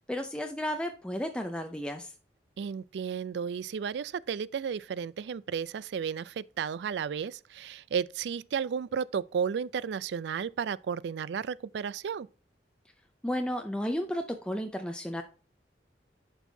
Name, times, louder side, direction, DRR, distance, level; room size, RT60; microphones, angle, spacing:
voice 1, 0.1-2.1 13.2-15.2, equal, 5° left, 0.4 m, -33 dB
voice 2, 2.6-12.3, right 7 dB, 70° right, 0.3 m, -33 dB
11.0 x 4.5 x 2.7 m
head